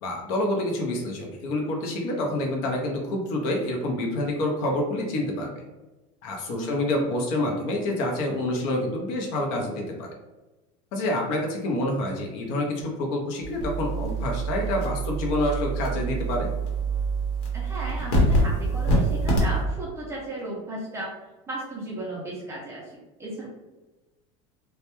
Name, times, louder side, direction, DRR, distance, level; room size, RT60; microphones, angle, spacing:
voice 1, 0.0-5.6 6.2-10.1 10.9-16.5, left 1 dB, 55° left, 1 dB, 0.6 m, -27 dB
voice 2, 6.6-7.0 17.5-21.1 21.5-22.8 23.2-23.5, right 1 dB, 15° right, -4 dB, 0.4 m, -35 dB
sound 1, 13.4-19.6, right 2 dB, 80° left, 0.9 m, -25 dB
2.1 x 2.1 x 2.9 m, 1.1 s
cardioid pair, 155°, 16 cm